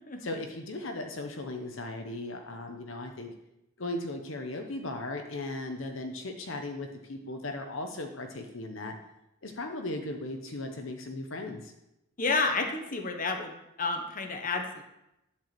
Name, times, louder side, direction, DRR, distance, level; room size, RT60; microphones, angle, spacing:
voice 1, 0.2-3.3 3.8-8.9 9.4-11.7, left 2 dB, 65° left, 4 dB, 0.9 m, -37 dB
voice 2, 12.2-14.8, left 3 dB, 40° left, 5 dB, 1.1 m, -30 dB
10.5 x 4.7 x 7.6 m, 0.88 s
head